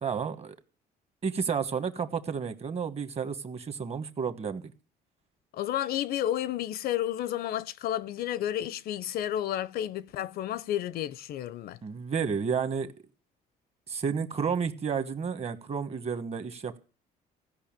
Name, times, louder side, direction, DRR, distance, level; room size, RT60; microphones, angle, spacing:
voice 1, 0.0-0.5 1.2-4.6 11.8-12.9 13.9-16.8, right 6 dB, 35° right, 1.3 m, -31 dB
voice 2, 5.5-11.8, left 12 dB, 65° left, 0.6 m, -31 dB
16.0 x 5.7 x 8.9 m
cardioid pair, 110°, 17 cm